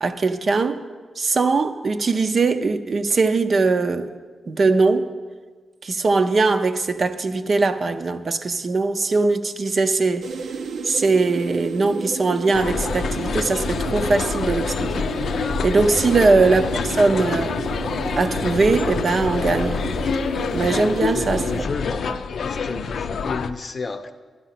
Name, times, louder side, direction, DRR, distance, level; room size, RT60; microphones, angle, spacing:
voice 1, 0.0-0.8 1.2-4.1 4.5-5.1 5.8-10.3 10.8-14.9 15.6-17.5 18.2-19.9 20.5-21.4 22.1-22.2, right 3 dB, 40° right, 8 dB, 0.6 m, -20 dB
sound 1, 10.2-21.7, right 5 dB, 85° right, 0.8 m, -31 dB
sound 2, 12.5-23.5, left 5 dB, 70° left, 0.5 m, -26 dB
voice 2, 20.9-22.1 22.4-24.1, left 4 dB, 35° left, 8 dB, 0.7 m, -31 dB
11.0 x 11.0 x 5.8 m, 1.4 s
wide cardioid pair, 140°, 0 cm